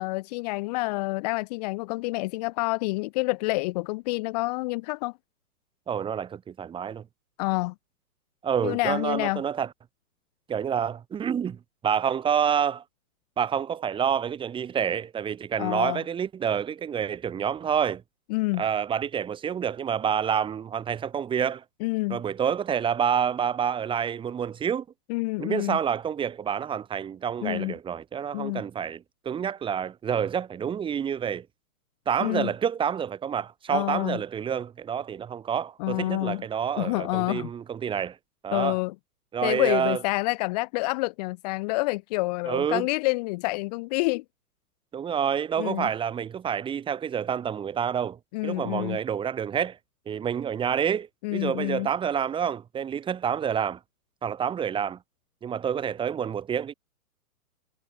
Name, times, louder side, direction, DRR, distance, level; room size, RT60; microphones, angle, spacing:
voice 1, 0.0-5.1 7.4-7.7 8.6-9.4 15.6-16.0 18.3-18.6 21.8-22.2 25.1-25.8 27.4-27.7 28.3-28.6 32.2-32.5 33.7-34.2 35.8-36.4 36.8-37.5 38.5-38.9 39.4-44.2 45.6-45.9 48.3-49.0 51.2-51.9, left 24 dB, 25° left, 2.0 m, -28 dB
voice 2, 5.9-7.0 8.4-9.7 10.5-12.8 13.4-18.0 18.6-21.6 22.1-24.8 25.4-31.5 32.1-38.2 38.4-38.8 39.3-40.0 42.5-42.9 44.9-49.8 50.0-53.8 54.2-55.0 55.4-56.7, right 8 dB, 10° right, 5.0 m, -28 dB
hypercardioid pair, 155°, 44 cm